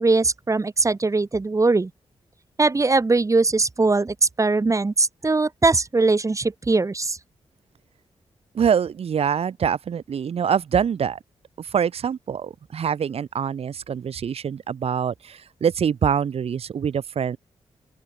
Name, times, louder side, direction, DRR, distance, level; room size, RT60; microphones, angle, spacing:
voice 1, 0.0-1.9 2.6-7.2, right 3 dB, 30° right, 1.0 m, -21 dB
voice 2, 8.5-11.2 11.6-17.4, right 7 dB, 65° right, 1.1 m, -24 dB
open air
cardioid pair, 60°, 11 cm